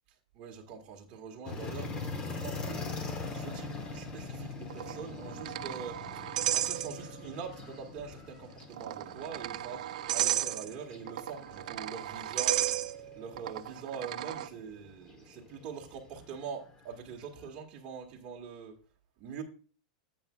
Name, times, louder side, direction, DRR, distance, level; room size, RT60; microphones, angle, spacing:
voice 1, 0.3-6.2 6.5-18.8 19.2-19.4, right 6 dB, 30° right, 1 dB, 1.8 m, -44 dB
sound 1, 1.4-17.5, left 3 dB, 20° left, 1.0 m, -43 dB
sound 2, 4.7-7.4 7.6-7.7 8.6-14.5, right 13 dB, 65° right, 0.4 m, -34 dB
10.5 x 8.4 x 2.3 m, 0.37 s
supercardioid pair, 165°, 4 cm